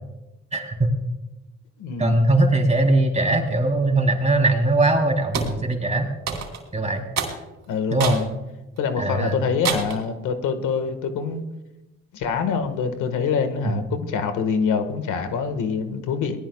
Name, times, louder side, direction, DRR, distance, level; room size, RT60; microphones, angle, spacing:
voice 1, 0.5-0.9 2.0-6.1 6.7-7.0 7.9-8.2 9.0-9.4 13.6-13.8, right 2 dB, 20° right, 2 dB, 3.6 m, -20 dB
voice 2, 1.8-2.2 7.7-8.3 8.8-11.4 12.1-16.4, left 6 dB, 85° left, 8 dB, 1.7 m, -25 dB
sound 1, 5.3-5.6 6.3-6.7 7.2-7.4 8.0-8.3 8.8-8.9 9.6-10.0, right 6 dB, 65° right, 3.8 m, -27 dB
23.0 x 19.0 x 2.4 m, 1.0 s
cardioid pair, 90°, 30 cm